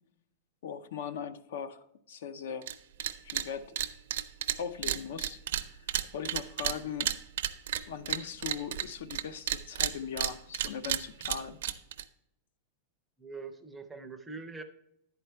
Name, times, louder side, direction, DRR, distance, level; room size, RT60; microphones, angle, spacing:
voice 1, 0.6-2.7 3.2-3.8 4.6-5.9 6.1-7.1 7.9-11.6, left 7 dB, 70° left, 14 dB, 0.5 m, -39 dB
sound 1, 2.6-2.7 3.0-3.5 3.8-9.2 9.5-12.0, right 11 dB, 70° right, 0.5 m, -32 dB
voice 2, 13.2-14.6, right 4 dB, 5° right, 7 dB, 0.5 m, -43 dB
10.5 x 4.5 x 4.4 m, 0.78 s
supercardioid pair, 175°, 0 cm